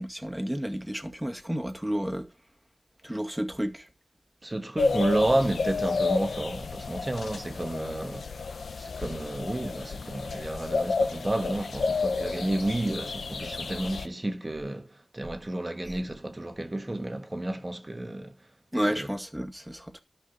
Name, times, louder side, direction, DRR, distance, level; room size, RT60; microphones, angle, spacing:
voice 1, 0.0-2.3 3.0-3.9 15.9-16.0 18.7-20.0, equal, 5° right, 2.2 m, -31 dB
voice 2, 4.4-8.4 8.8-18.4 18.9-19.1, right 1 dB, 25° right, 1.6 m, -31 dB
sound 1, 4.8-14.1, left 4 dB, 85° left, 1.1 m, -31 dB
13.0 x 6.0 x 5.8 m
wide cardioid pair, 65°, 0 cm